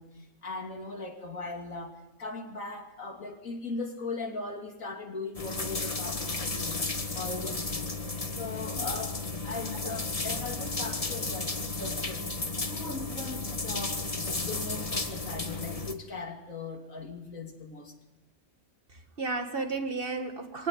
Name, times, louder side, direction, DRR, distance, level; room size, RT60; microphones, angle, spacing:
voice 1, 0.0-6.8 7.1-8.0 8.4-12.3 12.7-17.9, left 3 dB, 70° left, 3 dB, 3.2 m, -39 dB
sound 1, 5.3-15.9, left 3 dB, 25° left, 1.5 m, -33 dB
voice 2, 18.9-20.7, right 3 dB, 40° right, 7 dB, 1.8 m, -33 dB
23.5 x 17.0 x 9.7 m, 1.0 s
omnidirectional pair, 1.5 m